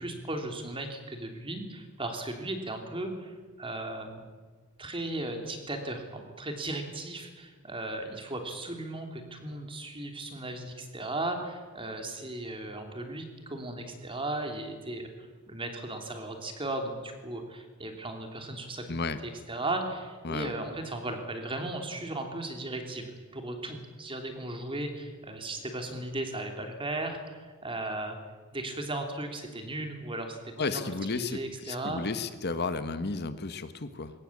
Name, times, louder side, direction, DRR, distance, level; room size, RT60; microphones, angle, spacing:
voice 1, 0.0-4.2 4.8-18.8 19.2-28.2 28.5-32.0, right 2 dB, 25° right, 4 dB, 3.1 m, -36 dB
voice 2, 18.9-19.2 20.2-20.5 30.6-31.4 31.7-34.1, left 3 dB, 50° left, 11 dB, 1.1 m, -32 dB
22.0 x 18.0 x 8.6 m, 1.4 s
head